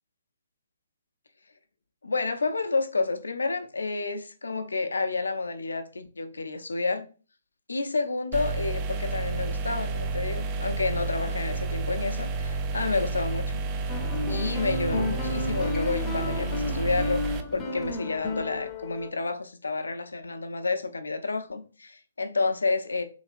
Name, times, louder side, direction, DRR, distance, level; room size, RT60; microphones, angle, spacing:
voice 1, 2.0-7.0 7.7-13.6 14.3-23.0, left 3 dB, 75° left, 0.5 m, -30 dB
sound 1, 8.3-17.4, right 3 dB, 25° right, 0.3 m, -30 dB
sound 2, 13.9-19.1, left 2 dB, 20° left, 0.6 m, -32 dB
3.2 x 2.8 x 2.5 m
figure-of-eight pair, 130°, 0 cm